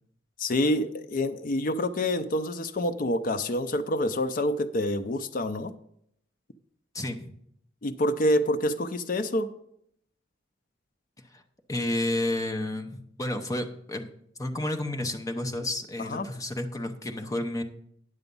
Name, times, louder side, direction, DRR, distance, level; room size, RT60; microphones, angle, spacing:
voice 1, 0.4-5.7 7.8-9.5 16.0-16.3, left 1 dB, 45° left, 8 dB, 0.5 m, -27 dB
voice 2, 6.9-7.3 11.3-11.4 11.7-14.1 14.4-17.6, left 1 dB, 15° left, 5 dB, 0.8 m, -31 dB
9.6 x 7.0 x 5.3 m, 0.71 s
head